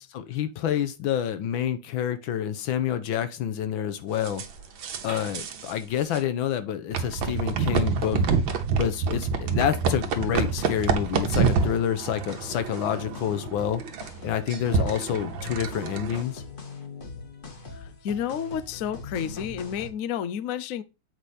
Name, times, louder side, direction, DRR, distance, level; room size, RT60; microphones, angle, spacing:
voice 1, 0.1-4.4 5.0-8.2 8.8-13.8 14.2-16.4, left 9 dB, 75° left, 1.6 m, -28 dB
sound 1, 4.2-5.7 6.0-6.2 6.9-16.2, right 5 dB, 70° right, 1.7 m, -27 dB
sound 2, 10.2-19.9, left 3 dB, 35° left, 1.0 m, -42 dB
voice 2, 18.0-20.8, left 8 dB, 90° left, 0.7 m, -30 dB
8.1 x 4.9 x 4.2 m
omnidirectional pair, 2.3 m